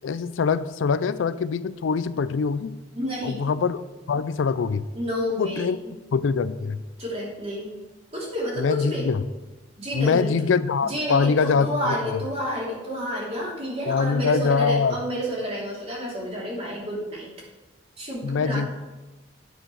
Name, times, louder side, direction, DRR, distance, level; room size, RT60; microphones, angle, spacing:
voice 1, 0.0-2.7 3.2-3.8 4.1-4.8 5.4-5.8 6.1-6.8 8.6-9.2 9.9-12.2 13.9-15.0 18.2-18.7, left 5 dB, 85° left, 15 dB, 0.4 m, -23 dB
voice 2, 2.9-3.4 4.9-5.9 7.0-7.7 8.1-9.0 9.8-10.4 10.9-17.3 18.0-18.6, equal, 35° right, -5 dB, 2.9 m, -29 dB
9.0 x 6.2 x 4.8 m, 1.1 s
head